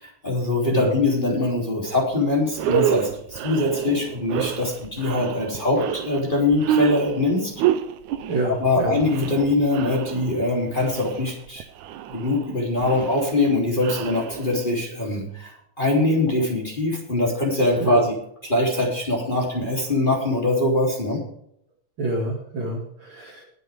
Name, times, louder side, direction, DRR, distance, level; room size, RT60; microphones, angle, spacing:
voice 1, 0.0-7.5 8.4-11.6 12.1-18.2 18.4-21.2, left 2 dB, 15° left, -3 dB, 3.2 m, -23 dB
sound 1, 2.0-2.1 2.5-14.8, right 10 dB, 80° right, 2.2 m, -29 dB
voice 2, 8.3-9.0 17.8-18.1 22.0-23.4, right 1 dB, 45° right, -1 dB, 2.6 m, -27 dB
21.0 x 7.6 x 3.6 m, 0.72 s
omnidirectional pair, 3.4 m